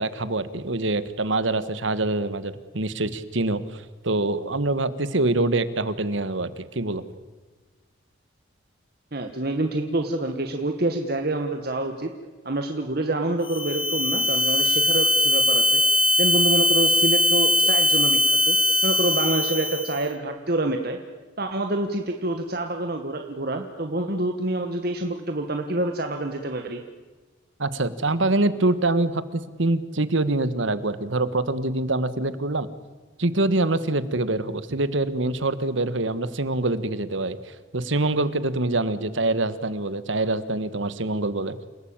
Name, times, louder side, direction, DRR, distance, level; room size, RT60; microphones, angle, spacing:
voice 1, 0.0-7.0 27.6-32.7 33.2-41.5, right 2 dB, 70° right, 14 dB, 1.5 m, -25 dB
voice 2, 9.1-12.1 12.4-15.8 16.2-18.6 18.8-21.0 21.4-26.8, right 2 dB, 50° right, 5 dB, 1.7 m, -27 dB
sound 1, 13.4-20.0, left 1 dB, 25° left, 1.4 m, -21 dB
29.0 x 17.5 x 8.9 m, 1.3 s
head